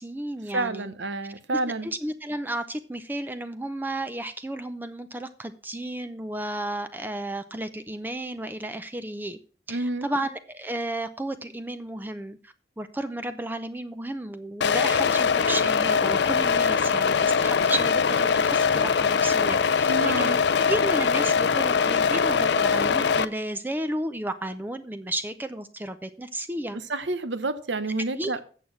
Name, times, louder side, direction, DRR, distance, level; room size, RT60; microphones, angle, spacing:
voice 1, 0.0-0.9 1.5-9.4 9.7-20.4 20.7-26.8 28.1-28.4, right 1 dB, 10° right, 10 dB, 0.5 m, -33 dB
voice 2, 0.5-1.9 9.7-10.1 19.9-20.4 26.7-28.4, right 2 dB, 90° right, 12 dB, 1.0 m, -29 dB
sound 1, 14.6-23.2, left 6 dB, 75° left, 0.5 m, -22 dB
8.4 x 7.0 x 5.9 m, 0.40 s
head